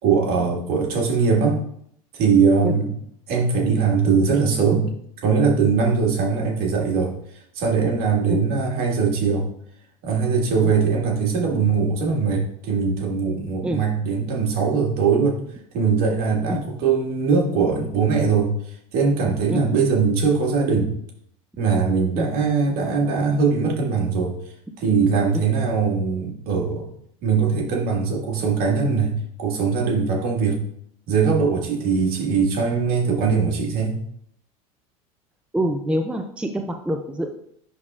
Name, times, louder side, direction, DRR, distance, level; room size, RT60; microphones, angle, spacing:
voice 1, 0.0-1.6 2.1-2.9 3.3-4.9 5.2-7.1 7.5-9.5 10.0-15.4 15.7-20.9 21.6-24.4 24.8-26.9 27.2-30.6 31.1-34.0, right 5 dB, 60° right, -1 dB, 2.0 m, -21 dB
voice 2, 35.5-37.3, equal, 5° right, 5 dB, 0.5 m, -25 dB
11.0 x 3.7 x 2.5 m, 0.67 s
hypercardioid pair, 85°, 18 cm